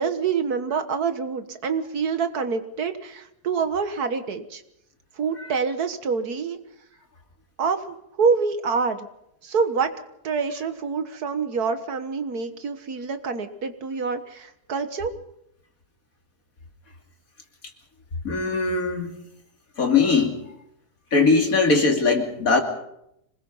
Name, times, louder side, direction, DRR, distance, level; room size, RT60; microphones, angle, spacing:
voice 1, 0.0-4.6 5.2-6.6 7.6-9.1 9.4-9.9 10.2-15.1, right 5 dB, 70° right, 9 dB, 1.9 m, -26 dB
voice 2, 18.2-19.1 19.8-20.4 21.1-22.6, left 4 dB, 60° left, 3 dB, 3.2 m, -20 dB
26.0 x 20.0 x 5.6 m, 0.80 s
omnidirectional pair, 1.7 m